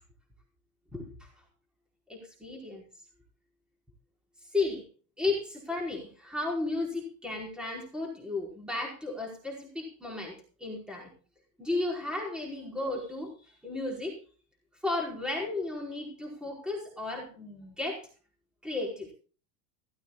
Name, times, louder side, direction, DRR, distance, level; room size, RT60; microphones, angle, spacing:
voice 1, 0.9-1.3 2.1-2.8 4.5-4.8 5.2-11.1 11.6-14.2 14.8-18.1 18.6-19.1, left 2 dB, ahead, 0 dB, 4.9 m, -34 dB
17.5 x 16.0 x 2.4 m, 0.36 s
supercardioid pair, 140°, 49 cm